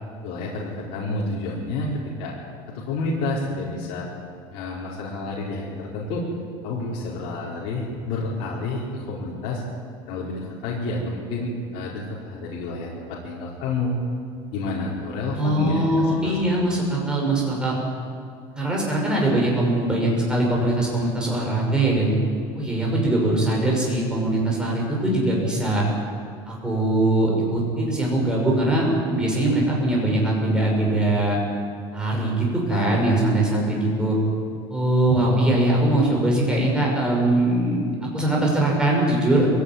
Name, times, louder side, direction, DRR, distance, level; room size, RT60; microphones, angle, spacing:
voice 1, 0.2-2.3 2.7-4.1 4.5-6.2 6.6-9.6 10.1-13.9 14.5-16.7 32.7-33.0 33.5-33.7, left 2 dB, 60° left, -5 dB, 4.6 m, -29 dB
voice 2, 15.4-17.7 18.6-22.2 22.5-25.9 26.5-31.4 31.9-34.2 34.7-37.9 38.1-39.5, right 1 dB, 5° right, -3 dB, 5.8 m, -21 dB
22.0 x 16.5 x 9.6 m, 2.2 s
cardioid pair, 170°, 11 cm